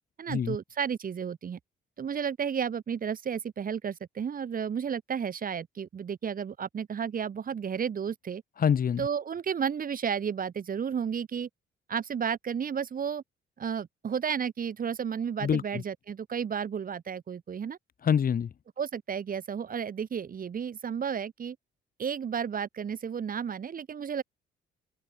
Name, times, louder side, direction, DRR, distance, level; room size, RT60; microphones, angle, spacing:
voice 1, 0.2-1.6 2.0-8.4 9.0-11.5 11.9-13.2 13.6-17.8 18.8-21.6 22.0-24.2, right 7 dB, 45° right, 1.6 m, -32 dB
voice 2, 8.6-9.1 15.4-15.8 18.0-18.5, left 8 dB, 45° left, 1.2 m, -26 dB
open air
cardioid pair, 90°, 20 cm